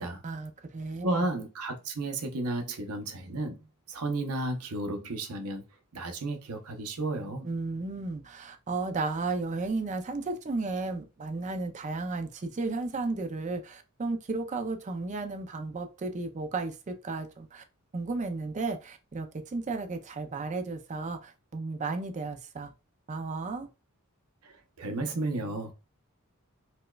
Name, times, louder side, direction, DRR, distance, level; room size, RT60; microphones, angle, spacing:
voice 1, 0.2-1.3 7.4-17.6 17.9-22.7 23.1-23.7, right 3 dB, 35° right, 0.4 m, -34 dB
voice 2, 1.0-3.6 3.9-5.6 5.9-7.5 24.4-25.7, right 2 dB, 85° right, 0.7 m, -33 dB
4.2 x 2.2 x 2.3 m
head